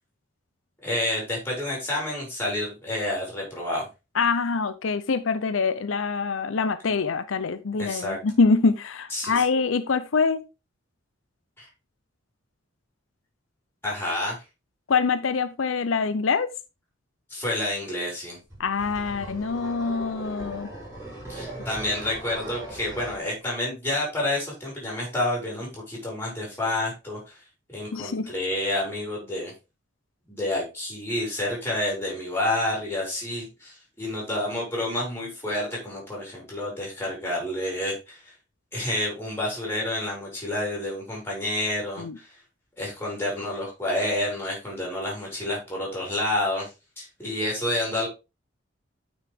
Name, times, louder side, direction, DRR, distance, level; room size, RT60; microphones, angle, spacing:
voice 1, 0.8-3.9 7.8-8.2 9.1-9.4 11.6-11.7 13.8-14.4 17.3-18.4 21.3-27.4 27.7-29.5 30.3-38.2 38.7-42.3 42.8-46.7 47.0-48.1, left 1 dB, 10° left, 5.3 m, -29 dB
voice 2, 4.1-10.4 14.9-16.5 18.6-20.7 27.9-28.3 42.0-42.2, left 4 dB, 75° left, 0.6 m, -25 dB
sound 1, 18.5-23.2, right 1 dB, 15° right, 5.6 m, -39 dB
9.3 x 6.3 x 3.6 m
head